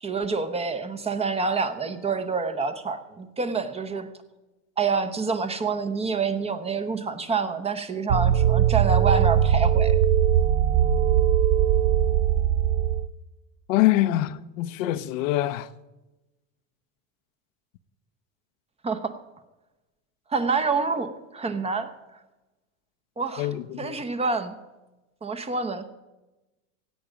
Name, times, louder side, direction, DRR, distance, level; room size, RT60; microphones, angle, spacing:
voice 1, 0.0-4.1 4.8-10.0 18.8-19.2 20.3-21.9 23.2-23.5 23.8-24.5 25.2-25.8, right 4 dB, 15° right, 0.8 m, -27 dB
sound 1, 8.1-13.1, right 10 dB, 70° right, 0.7 m, -20 dB
voice 2, 13.7-15.7 23.4-24.0, left 15 dB, 75° left, 0.7 m, -24 dB
16.5 x 8.7 x 5.1 m
supercardioid pair, 135°, 40 cm